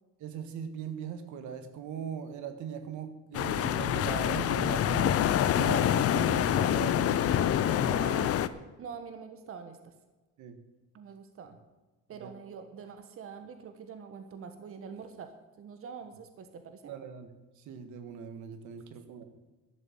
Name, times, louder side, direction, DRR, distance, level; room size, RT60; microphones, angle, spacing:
voice 1, 0.2-8.0 10.4-10.6 12.1-12.3 16.9-17.3 17.6-19.3, right 7 dB, 75° right, 9 dB, 1.8 m, -40 dB
sound 1, 3.3-8.5, left 10 dB, 50° left, 0.7 m, -26 dB
voice 2, 7.9-9.9 10.9-11.6 12.1-15.3 15.6-16.9, right 6 dB, 45° right, 8 dB, 1.4 m, -45 dB
12.0 x 6.8 x 8.7 m, 1.2 s
cardioid pair, 105°, 30 cm